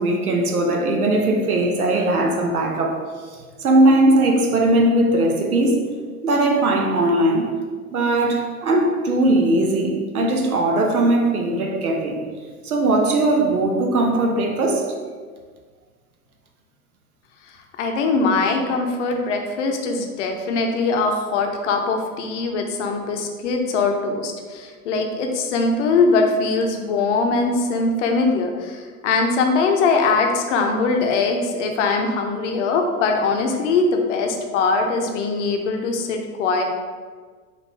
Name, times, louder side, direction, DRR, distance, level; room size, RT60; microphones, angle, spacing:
voice 1, 0.0-3.0 3.6-5.8 6.2-7.5 7.9-12.2 12.6-14.9, right 1 dB, 75° right, 2 dB, 0.8 m, -19 dB
voice 2, 17.8-36.6, left 3 dB, 55° left, 3 dB, 0.7 m, -21 dB
5.0 x 2.6 x 3.1 m, 1.5 s
figure-of-eight pair, 90°, 44 cm